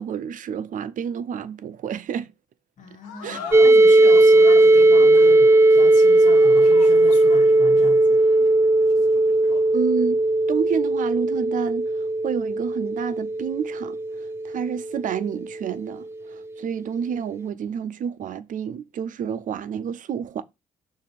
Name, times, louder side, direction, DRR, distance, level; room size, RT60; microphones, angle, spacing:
voice 1, 0.0-2.3 3.2-3.4 9.7-10.2 10.5-20.4, right 7 dB, 60° right, 0.7 m, -29 dB
voice 2, 2.8-8.2, left 2 dB, 60° left, 1.8 m, -38 dB
sound 1, 3.0-9.8, left 6 dB, 85° left, 0.8 m, -41 dB
sound 2, 3.5-15.2, right 2 dB, 15° right, 0.8 m, -17 dB
6.5 x 2.8 x 5.7 m
hypercardioid pair, 50°, 15 cm